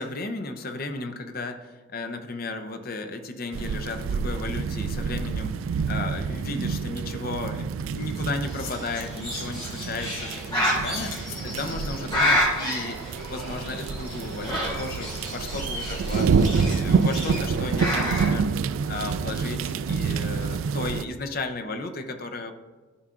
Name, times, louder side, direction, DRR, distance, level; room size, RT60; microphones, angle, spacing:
voice 1, 0.0-5.6 5.9-11.1 11.4-13.0 13.3-18.5 18.9-22.5, left 3 dB, 45° left, 7 dB, 0.6 m, -34 dB
sound 1, 3.5-21.0, right 5 dB, 65° right, 0.3 m, -28 dB
sound 2, 7.9-8.0 8.3-8.9 10.8-12.1, left 6 dB, 70° left, 0.9 m, -42 dB
Bird, 8.4-18.3, equal, 25° left, 2.3 m, -30 dB
12.5 x 5.5 x 2.5 m, 1.4 s
head